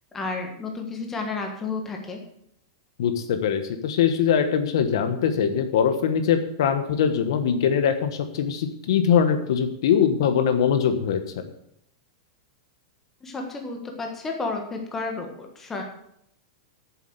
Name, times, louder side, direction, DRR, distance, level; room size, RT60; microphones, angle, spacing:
voice 1, 0.1-2.2 13.2-15.8, left 3 dB, 10° left, 2 dB, 1.4 m, -31 dB
voice 2, 3.0-11.2, left 7 dB, 65° left, 8 dB, 1.2 m, -22 dB
8.5 x 7.2 x 7.9 m, 0.74 s
supercardioid pair, 170°, 3 cm